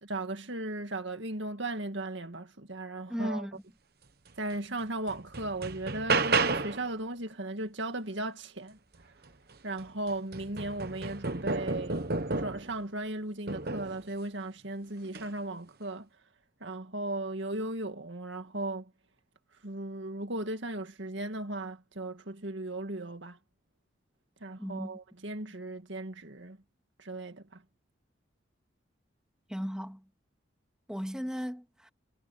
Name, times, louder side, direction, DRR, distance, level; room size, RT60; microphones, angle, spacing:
voice 1, 0.0-3.5 4.4-8.8 9.6-12.0 12.4-16.1 16.6-18.9 19.6-23.4 24.4-26.6 27.0-27.6, right 2 dB, 70° right, 2.0 m, -36 dB
voice 2, 3.1-3.6 24.6-24.9 29.5-30.0 30.9-31.9, equal, 5° right, 2.4 m, -35 dB
sound 1, 4.5-4.6 5.1-6.9 9.3-9.4 9.8-12.8 13.5-14.0 15.0-15.3, right 3 dB, 50° right, 1.2 m, -31 dB
head